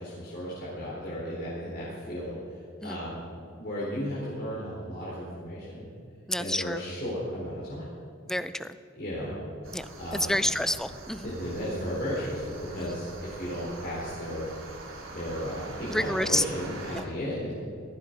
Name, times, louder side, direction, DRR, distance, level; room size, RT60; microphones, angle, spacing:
voice 1, 0.0-2.4 2.8-3.2 3.6-5.9 6.4-7.9 9.0-9.4 10.0-10.4 11.2-14.5 15.1-17.5, equal, 55° left, -7 dB, 3.9 m, -34 dB
voice 2, 6.3-6.8 8.3-8.7 9.7-11.3 12.8-13.0 15.9-16.4 16.9-17.1, left 1 dB, ahead, 12 dB, 0.5 m, -29 dB
sound 1, 9.6-17.0, right 2 dB, 85° right, 3.0 m, -44 dB
18.5 x 14.5 x 5.2 m, 2.3 s
head